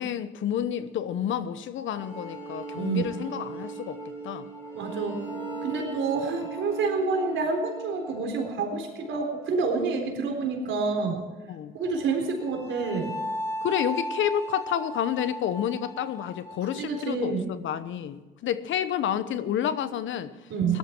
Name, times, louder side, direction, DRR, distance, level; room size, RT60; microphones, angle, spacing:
voice 1, 0.0-4.5 11.5-11.8 13.6-20.3 20.7-20.8, left 9 dB, 75° left, 13 dB, 1.0 m, -30 dB
sound 1, 1.9-9.9 11.8-17.1, right 1 dB, 15° left, 6.1 m, -38 dB
voice 2, 4.7-11.2 11.7-13.2 16.8-17.5 20.5-20.8, right 4 dB, 75° right, 3 dB, 4.0 m, -28 dB
18.0 x 13.0 x 4.5 m, 1.3 s
cardioid pair, 90°, 20 cm